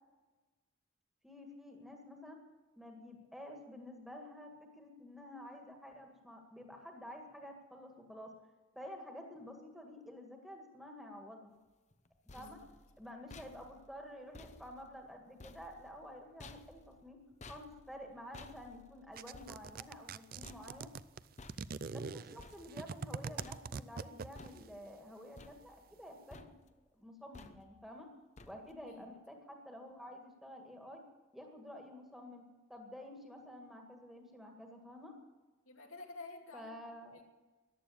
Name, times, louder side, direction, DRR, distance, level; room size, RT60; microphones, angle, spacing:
voice 1, 1.2-2.4 2.8-8.3 8.8-11.6 12.3-12.6 13.0-17.2 17.5-20.9 21.9-26.6 26.9-28.1 28.5-31.0 31.3-35.1 36.5-37.2, left 1 dB, ahead, 2 dB, 1.8 m, -50 dB
sound 1, 11.9-23.1 23.4-24.0 24.4-25.0 25.4-26.1 26.3-26.8 27.3-27.9 28.4-28.9, left 2 dB, 35° left, 0.7 m, -57 dB
voice 2, 12.3-12.7 28.9-29.1 35.7-36.8 37.1-37.2, left 3 dB, 90° left, 2 dB, 2.4 m, -51 dB
sound 2, 19.2-24.6, right 5 dB, 45° right, 0.4 m, -42 dB
14.5 x 11.0 x 8.5 m, 1.2 s
head